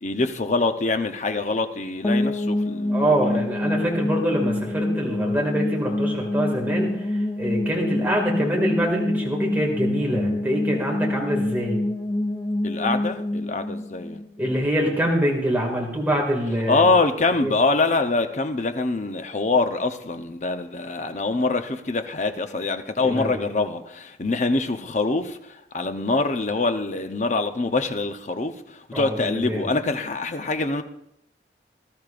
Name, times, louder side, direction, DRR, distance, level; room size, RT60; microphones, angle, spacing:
voice 1, 0.0-3.4 12.6-14.2 16.7-30.8, left 3 dB, 40° left, 0.7 m, -24 dB
sound 1, 2.0-14.9, left 1 dB, 15° left, 0.3 m, -26 dB
voice 2, 2.9-7.1 7.4-11.8 14.4-16.9 17.4-17.5 23.0-23.4 28.9-29.7, equal, 10° right, 2.1 m, -25 dB
20.0 x 12.5 x 2.5 m
head